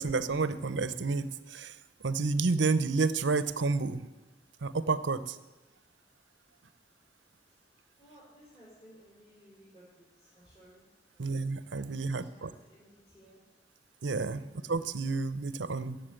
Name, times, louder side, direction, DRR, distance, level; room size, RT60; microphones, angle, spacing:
voice 1, 0.0-1.8 2.0-4.1 4.6-5.4 11.2-12.5 14.0-16.0, right 4 dB, 80° right, 14 dB, 0.7 m, -30 dB
voice 2, 8.0-11.4 11.9-13.4, equal, 25° left, -10 dB, 5.3 m, -59 dB
14.5 x 7.2 x 9.0 m, 1.2 s
head